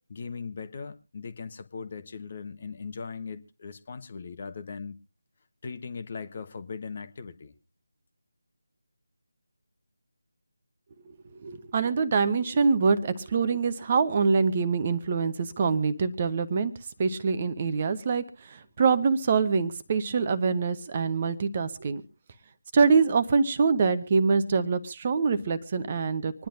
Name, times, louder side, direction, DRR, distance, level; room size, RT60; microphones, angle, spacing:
voice 1, 0.1-5.0 5.6-7.5, left 5 dB, 35° left, 11 dB, 1.0 m, -39 dB
voice 2, 11.4-16.7 17.0-22.0 22.7-26.5, right 5 dB, 30° right, 12 dB, 0.8 m, -25 dB
26.0 x 10.0 x 2.6 m, 0.29 s
figure-of-eight pair, 160°, 0 cm